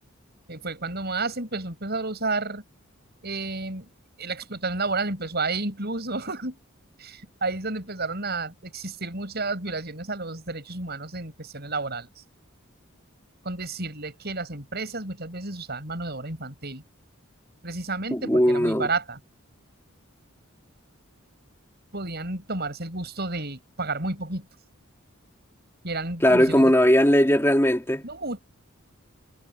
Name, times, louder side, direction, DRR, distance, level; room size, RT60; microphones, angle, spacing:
voice 1, 0.5-2.6 3.2-3.9 4.2-6.6 7.0-12.2 13.4-16.8 17.6-19.2 21.9-24.5 25.8-26.7 28.0-28.4, right 3 dB, 50° right, 7.0 m, -31 dB
voice 2, 18.1-18.9 26.2-28.0, equal, 10° left, 2.8 m, -19 dB
head